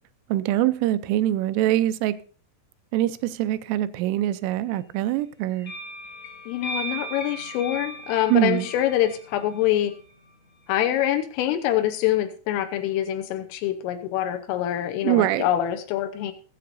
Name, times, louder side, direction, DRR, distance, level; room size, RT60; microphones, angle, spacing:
voice 1, 0.3-2.1 2.9-5.7 8.3-8.7 15.0-15.4, right 14 dB, 85° right, 13 dB, 3.2 m, -23 dB
sound 1, 5.6-10.1, right 1 dB, 55° left, 1.6 m, -37 dB
voice 2, 6.5-9.9 10.7-16.3, left 12 dB, 85° left, 6 dB, 3.4 m, -25 dB
21.5 x 8.5 x 2.6 m, 0.40 s
omnidirectional pair, 5.7 m